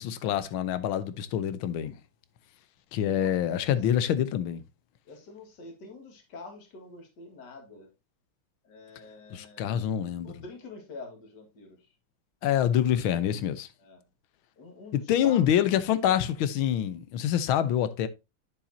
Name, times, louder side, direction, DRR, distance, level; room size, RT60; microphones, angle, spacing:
voice 1, 0.0-2.0 2.9-4.6 9.3-10.4 12.4-13.7 15.1-18.1, left 10 dB, 80° left, 1.5 m, -26 dB
voice 2, 3.4-3.8 5.1-7.9 8.6-9.8 10.2-11.9 13.8-14.0 14.6-15.5, left 3 dB, 55° left, 2.5 m, -46 dB
8.9 x 7.2 x 2.7 m
omnidirectional pair, 2.2 m